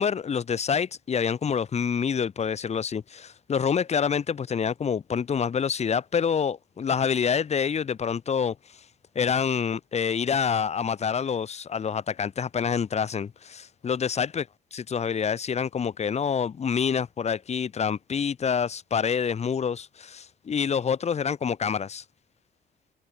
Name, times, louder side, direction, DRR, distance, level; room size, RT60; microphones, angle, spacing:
voice 1, 0.0-8.6 9.2-14.4 14.7-22.0, left 7 dB, 35° left, 0.6 m, -27 dB
cardioid pair, 90°, 20 cm